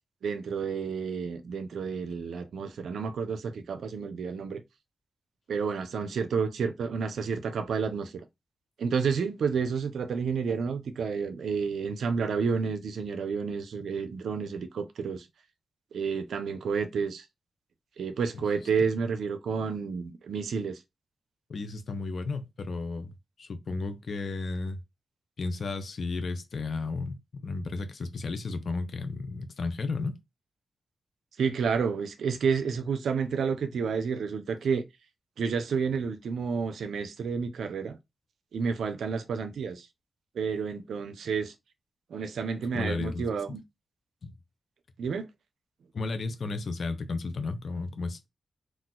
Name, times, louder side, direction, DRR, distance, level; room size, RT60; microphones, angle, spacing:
voice 1, 0.2-4.6 5.5-8.2 8.8-15.3 15.9-17.2 18.0-20.8 31.4-34.8 35.4-38.0 38.5-39.9 40.3-41.5 42.1-43.6 45.0-45.3, right 5 dB, 80° right, 0.4 m, -30 dB
voice 2, 21.5-24.8 25.4-30.2 42.7-43.2 44.2-44.3 45.9-48.3, left 3 dB, 65° left, 0.5 m, -33 dB
2.4 x 2.2 x 3.8 m
supercardioid pair, 40°, 0 cm